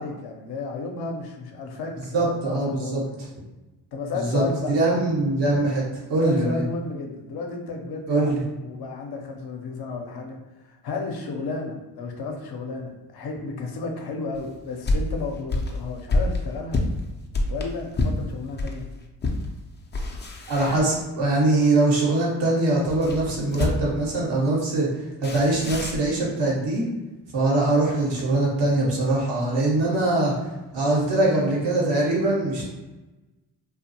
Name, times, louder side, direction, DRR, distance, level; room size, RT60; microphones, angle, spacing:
voice 1, 0.0-3.1 3.9-4.7 6.2-8.3 8.6-16.8 17.5-18.9, left 3 dB, 60° left, 2 dB, 0.7 m, -33 dB
voice 2, 2.1-3.0 4.3-5.8 6.1-6.6 8.1-8.4 20.5-24.9 25.2-26.8 27.3-30.3 30.7-32.6, right 2 dB, 75° right, -3 dB, 1.1 m, -22 dB
sound 1, 14.3-18.8 19.2-19.5 19.8-21.3 22.8-24.0 25.2-26.1, left 2 dB, 25° left, 0.5 m, -27 dB
2.5 x 2.3 x 2.8 m, 1.1 s
supercardioid pair, 50°, 43 cm